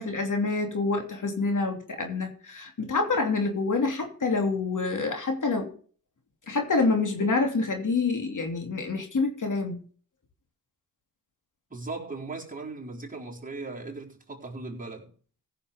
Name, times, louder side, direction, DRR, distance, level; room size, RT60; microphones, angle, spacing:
voice 1, 0.0-5.7 6.5-9.8, left 3 dB, 50° left, 2.9 m, -27 dB
voice 2, 11.7-15.1, right 3 dB, 20° right, 4.2 m, -38 dB
15.5 x 6.9 x 5.2 m
supercardioid pair, 60°, 40 cm